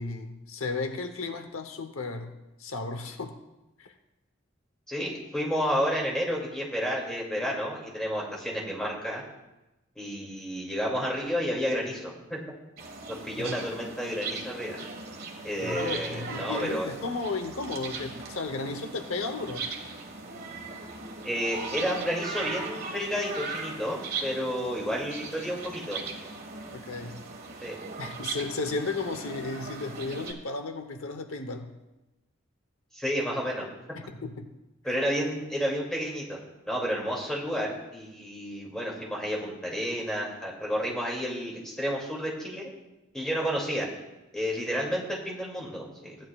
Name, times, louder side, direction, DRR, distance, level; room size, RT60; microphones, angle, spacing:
voice 1, 0.0-3.4 3.8-3.9 13.4-13.6 15.6-19.7 26.7-27.2 28.0-31.8 33.9-34.5, left 3 dB, 85° left, 7 dB, 0.9 m, -34 dB
voice 2, 4.9-9.2 10.0-12.4 13.1-14.8 15.4-16.9 21.2-26.0 27.6-27.8 32.9-33.7 34.8-36.4 36.7-42.7 43.1-43.9 44.3-46.2, equal, 5° left, -3 dB, 2.4 m, -31 dB
sound 1, 12.8-30.3, right 4 dB, 45° right, 1.5 m, -38 dB
16.5 x 10.5 x 2.4 m, 0.99 s
head